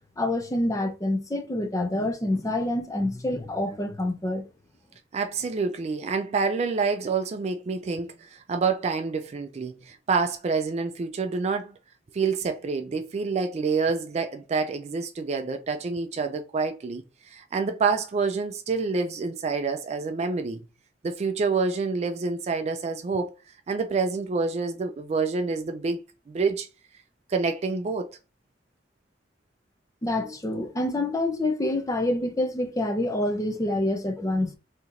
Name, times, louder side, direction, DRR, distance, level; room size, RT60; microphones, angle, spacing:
voice 1, 0.2-4.4 30.0-34.5, left 1 dB, 20° left, 0.5 m, -27 dB
voice 2, 5.1-11.7 12.1-20.6 21.0-23.3 23.7-26.0 26.3-26.7 27.3-28.2, right 4 dB, 35° right, 0.3 m, -27 dB
4.2 x 2.9 x 2.5 m
head